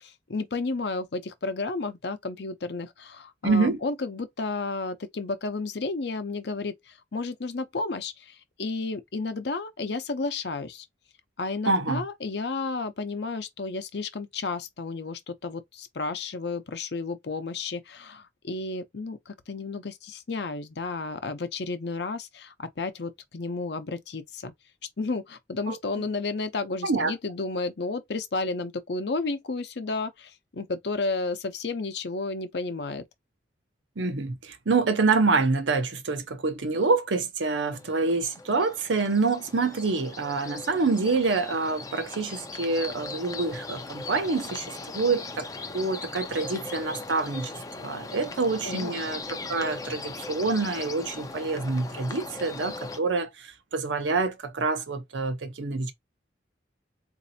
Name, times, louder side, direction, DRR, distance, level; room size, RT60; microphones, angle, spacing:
voice 1, 0.0-10.9 11.4-24.5 25.0-33.0 48.6-48.9, left 3 dB, 65° left, 0.6 m, -32 dB
voice 2, 3.4-3.8 11.7-12.0 25.7-25.8 26.8-27.1 34.0-45.5 45.7-47.5 47.8-55.9, right 3 dB, 80° right, 0.7 m, -26 dB
sound 1, 37.6-53.0, left 3 dB, 20° left, 0.4 m, -39 dB
4.1 x 2.6 x 2.7 m
head